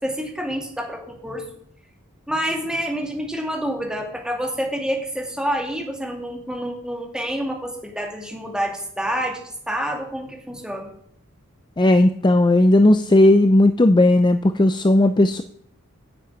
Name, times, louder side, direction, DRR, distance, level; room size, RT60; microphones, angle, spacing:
voice 1, 0.0-1.4 2.3-9.4 9.7-10.9, equal, 5° right, 2 dB, 2.4 m, -28 dB
voice 2, 11.8-15.4, left 1 dB, 20° left, 10 dB, 0.5 m, -15 dB
10.5 x 7.3 x 8.8 m, 0.66 s
head